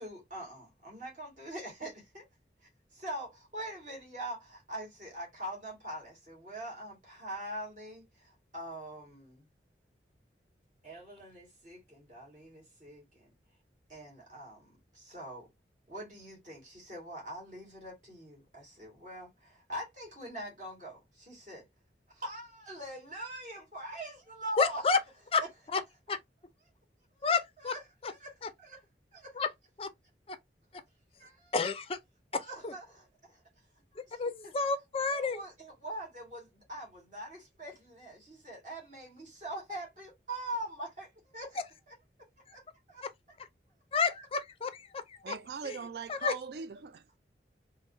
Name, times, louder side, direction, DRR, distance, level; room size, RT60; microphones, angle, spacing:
voice 1, 0.0-2.3 2.6-9.5 10.8-13.3 13.9-15.5 15.9-21.7 22.1-24.8 27.1-27.2 27.6-27.8 28.2-28.3 28.6-28.8 29.1-29.4 31.2-31.5 32.5-33.4 33.9-34.5 35.0-41.6 41.9-42.0 42.5-42.6 42.9-43.0, right 1 dB, 45° right, 1.8 m, -43 dB
voice 2, 24.6-25.0 25.3-25.4 25.7-25.8 26.1-26.2 27.2-27.7 28.0-28.1 28.4-28.5 29.3-29.5 29.8-29.9 30.3-30.4 30.7-30.8 31.5-32.0 32.3-32.7 34.0-35.4 42.5-42.6 43.0-43.1 43.4-43.5 43.9-45.4 45.6-45.8 46.1-46.3, left 4 dB, 30° left, 0.4 m, -31 dB
voice 3, 45.2-47.2, right 5 dB, 65° right, 0.3 m, -41 dB
3.8 x 2.0 x 2.6 m
head